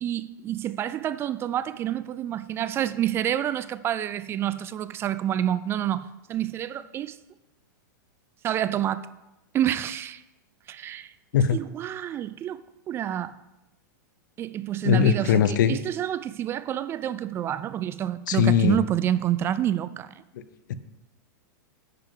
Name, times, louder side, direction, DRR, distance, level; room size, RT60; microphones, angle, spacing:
voice 1, 0.0-7.2 8.4-9.1 9.5-10.2 10.7-11.1 11.5-13.3 14.4-20.1, right 11 dB, 25° right, 0.3 m, -28 dB
voice 2, 14.8-15.8 18.3-18.8 20.7-20.8, left 8 dB, 70° left, 0.8 m, -20 dB
10.5 x 9.2 x 3.8 m
hypercardioid pair, 135°, 11 cm